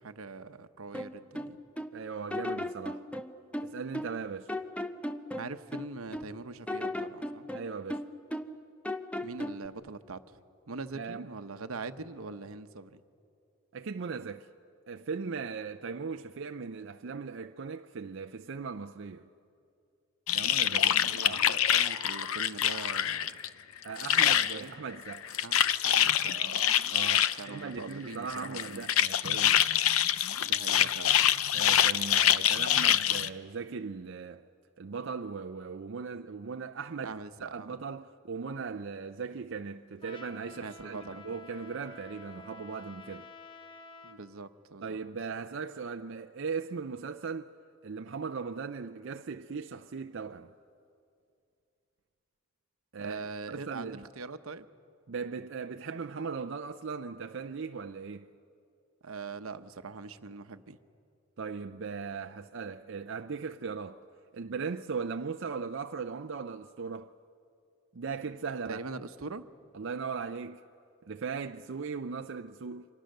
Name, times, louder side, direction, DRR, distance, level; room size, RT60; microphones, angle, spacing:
voice 1, 0.0-1.6 5.4-7.5 9.2-10.4 10.7-13.0 21.1-23.4 24.3-24.7 25.4-25.6 25.8-26.8 27.4-28.9 30.4-31.3 37.0-37.8 40.6-41.2 44.0-45.0 53.0-54.7 59.0-60.8 68.7-69.4, right 4 dB, 80° right, 0.9 m, -42 dB
sound 1, 0.9-2.0 2.3-4.2 4.5-6.3 6.7-8.6 8.9-9.7, left 1 dB, 5° left, 0.6 m, -36 dB
voice 2, 1.9-3.1 3.6-4.5 7.5-8.0 10.9-11.3 13.7-14.5 14.9-19.3 20.3-21.4 23.8-25.3 26.9-29.6 31.5-34.4 34.8-43.3 44.8-47.5 47.8-50.5 52.9-53.2 53.5-54.1 55.1-58.3 61.4-64.0 64.3-67.1 67.9-68.8 69.7-70.6 71.0-72.9, right 5 dB, 60° right, 0.5 m, -38 dB
sound 2, 20.3-23.5 23.8-24.6 25.1-27.4 28.3-33.3, left 10 dB, 80° left, 0.6 m, -25 dB
Trumpet, 40.0-44.2, left 3 dB, 25° left, 1.2 m, -50 dB
28.5 x 25.5 x 6.6 m
head